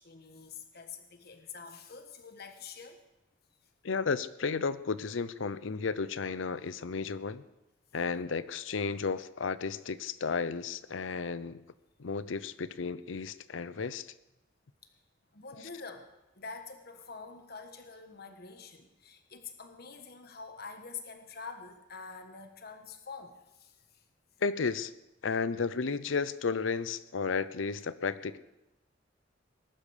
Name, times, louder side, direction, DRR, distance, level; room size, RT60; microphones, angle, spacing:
voice 1, 0.0-3.0 15.3-16.1 16.3-24.0, left 5 dB, 55° left, 6 dB, 1.4 m, -46 dB
voice 2, 3.8-7.4 7.9-11.6 12.0-14.1 24.4-24.9 25.2-28.4, left 5 dB, 85° left, 16 dB, 0.7 m, -33 dB
20.0 x 11.5 x 5.1 m, 0.94 s
head